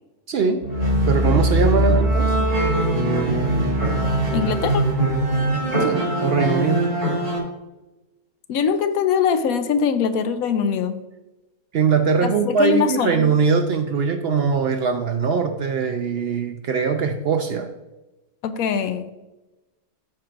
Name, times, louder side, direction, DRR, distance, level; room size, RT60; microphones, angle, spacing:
voice 1, 0.3-0.6 1.1-2.3 5.8-6.9 11.7-17.7, right 5 dB, 65° right, 6 dB, 0.6 m, -21 dB
sound 1, 0.6-7.4, right 1 dB, 85° right, 2.9 m, -21 dB
voice 2, 4.3-4.9 8.5-10.9 12.2-13.2 18.4-19.0, left 6 dB, 75° left, 10 dB, 1.0 m, -22 dB
13.0 x 4.5 x 2.5 m, 1.0 s
omnidirectional pair, 1.6 m